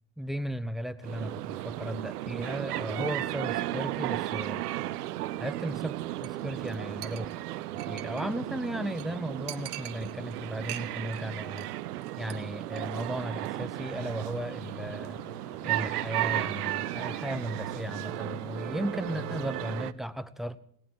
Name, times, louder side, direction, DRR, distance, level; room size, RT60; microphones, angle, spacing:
voice 1, 0.2-4.6 5.4-7.3 7.7-11.7 12.2-15.2 15.6-20.6, equal, ahead, 13 dB, 0.8 m, -36 dB
sound 1, 1.0-19.9, right 15 dB, 85° right, 0.6 m, -35 dB
Chink clink, 6.2-6.4 6.7-6.8 7.0-8.4 8.7-8.8 9.0-9.1 9.5-10.4 10.7-11.2 11.4-11.7 12.0-12.3 12.7-12.8, right 14 dB, 60° right, 1.2 m, -42 dB
sound 2, 13.8-19.4, equal, 40° left, 7.6 m, -45 dB
17.5 x 10.5 x 7.6 m, 0.68 s
hypercardioid pair, 65°, 45 cm